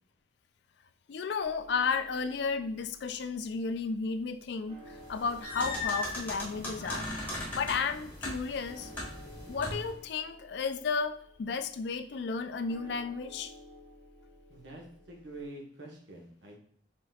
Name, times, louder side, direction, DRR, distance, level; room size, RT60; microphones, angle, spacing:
voice 1, 1.1-7.1 7.5-8.9 9.5-13.5, left 5 dB, 60° left, 9 dB, 0.4 m, -33 dB
sound 1, 1.4-15.4, left 1 dB, 30° right, 0.8 m, -55 dB
sound 2, 5.0-10.0, left 2 dB, 10° left, 1.1 m, -38 dB
voice 2, 14.5-16.6, right 2 dB, 70° right, -1 dB, 1.1 m, -46 dB
5.1 x 3.8 x 2.3 m, 0.64 s
head